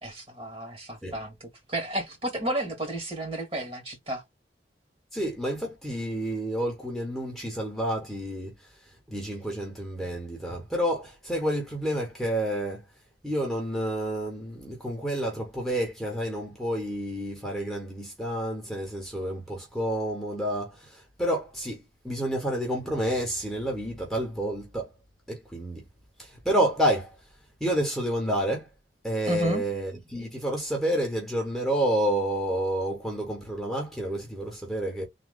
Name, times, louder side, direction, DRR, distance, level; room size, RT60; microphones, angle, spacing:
voice 1, 0.0-1.3 1.7-4.2 29.3-29.6, right 2 dB, 30° right, 2.0 m, -31 dB
voice 2, 5.1-8.7 9.1-12.8 13.2-24.9 25.3-25.8 26.2-27.1 27.6-28.7 29.0-35.1, right 1 dB, ahead, 1.2 m, -29 dB
3.8 x 2.9 x 3.6 m
head